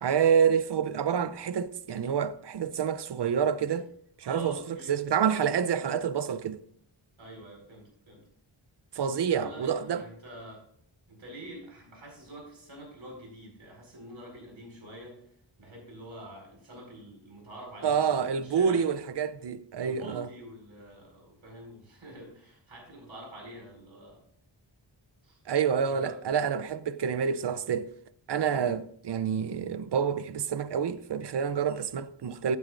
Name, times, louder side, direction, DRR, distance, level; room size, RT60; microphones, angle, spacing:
voice 1, 0.0-3.9 4.2-6.6 8.9-10.0 17.8-20.3 25.5-27.9 28.3-32.6, right 7 dB, 60° right, 0.7 m, -28 dB
voice 2, 4.2-5.0 7.2-8.2 9.0-10.6 11.1-15.3 15.6-18.8 19.8-24.2 25.2-25.4 25.9-26.1, right 1 dB, 90° right, 5.1 m, -47 dB
15.0 x 9.4 x 2.6 m
wide cardioid pair, 95°, 46 cm